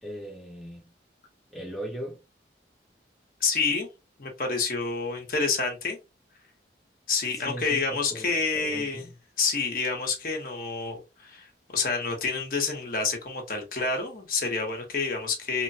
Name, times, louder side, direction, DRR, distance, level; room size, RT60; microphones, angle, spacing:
voice 1, 0.0-0.8 1.5-2.2 7.3-9.1, right 1 dB, ahead, 0.9 m, -38 dB
voice 2, 3.4-3.9 4.2-6.0 7.1-9.1 9.4-15.6, left 4 dB, 50° left, 1.0 m, -28 dB
3.0 x 2.2 x 2.7 m
head